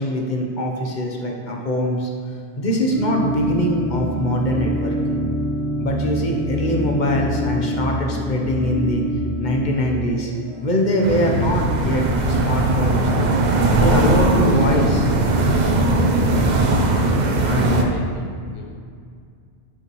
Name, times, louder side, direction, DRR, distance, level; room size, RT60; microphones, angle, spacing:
voice 1, 0.0-2.1 2.6-5.3 5.8-9.0 9.4-10.3 10.6-13.1 13.7-15.1 15.5-15.7 17.4-17.9, left 1 dB, 45° left, 0 dB, 1.0 m, -22 dB
sound 1, 1.8-18.1, right 5 dB, 30° right, 1.6 m, -37 dB
sound 2, 2.9-10.0, equal, 80° right, 2.3 m, -26 dB
sound 3, 11.0-17.8, right 2 dB, 50° right, 0.7 m, -19 dB
voice 2, 17.6-18.8, left 3 dB, 20° left, 1 dB, 0.3 m, -40 dB
9.8 x 5.7 x 3.1 m, 2.2 s
omnidirectional pair, 1.1 m